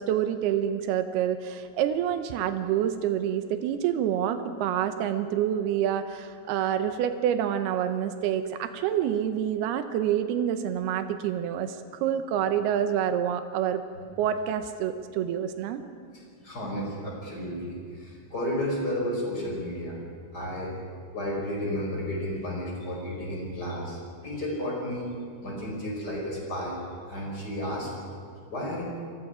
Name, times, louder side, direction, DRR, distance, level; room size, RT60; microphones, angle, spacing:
voice 1, 0.0-13.8 14.2-15.8, right 9 dB, 85° right, 8 dB, 2.2 m, -27 dB
voice 2, 16.1-20.0 20.3-20.7 21.1-25.1 25.4-26.8 27.1-27.9 28.5-28.8, equal, 20° left, -2 dB, 5.3 m, -32 dB
29.0 x 22.0 x 5.0 m, 2.1 s
omnidirectional pair, 5.8 m